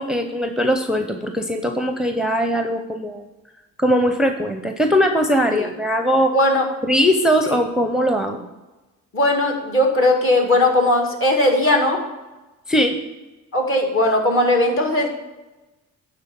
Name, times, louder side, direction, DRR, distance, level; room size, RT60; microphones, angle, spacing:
voice 1, 0.0-3.2 3.8-6.3 6.9-8.4 12.7-13.0, equal, ahead, 5 dB, 0.6 m, -20 dB
voice 2, 6.3-6.7 9.1-12.0 13.5-15.1, left 1 dB, 45° left, 1 dB, 2.0 m, -18 dB
9.5 x 3.8 x 7.0 m, 1.1 s
cardioid pair, 90°, 30 cm